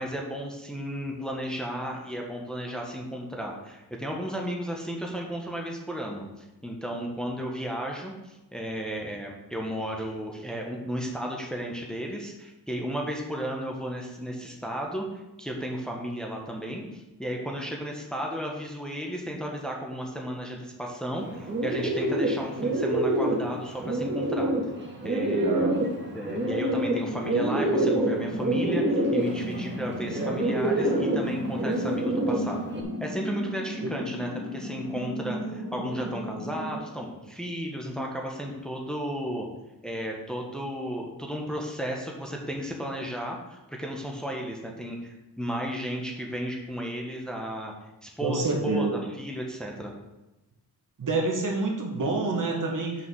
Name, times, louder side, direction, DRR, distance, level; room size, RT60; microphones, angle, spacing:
voice 1, 0.0-6.3 6.6-15.1 15.4-24.5 25.0-25.9 26.1-32.6 33.0-39.4 39.8-47.7 48.0-49.9, equal, ahead, -1 dB, 1.3 m, -34 dB
Bird, 21.2-32.8, right 1 dB, 30° right, 1.7 m, -27 dB
voice 2, 25.1-25.8 33.8-33.9 48.2-49.0 51.0-53.1, right 3 dB, 50° right, 0 dB, 1.8 m, -28 dB
sound 1, 27.0-36.7, equal, 50° left, 2.5 m, -35 dB
6.1 x 5.1 x 6.4 m, 0.97 s
cardioid pair, 90°, 39 cm